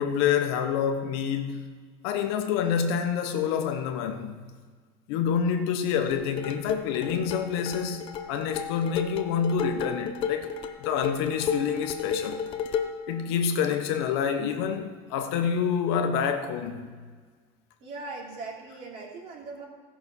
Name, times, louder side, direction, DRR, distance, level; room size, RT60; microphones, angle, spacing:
voice 1, 0.0-1.6 2.0-4.4 5.1-8.0 8.3-10.5 10.8-12.4 13.1-16.9, left 7 dB, 85° left, 1.2 m, -27 dB
sound 1, 6.1-13.1, left 6 dB, 40° left, 0.8 m, -33 dB
voice 2, 17.8-19.6, right 3 dB, 45° right, 3.0 m, -39 dB
15.5 x 6.2 x 5.5 m
cardioid pair, 160°, 13 cm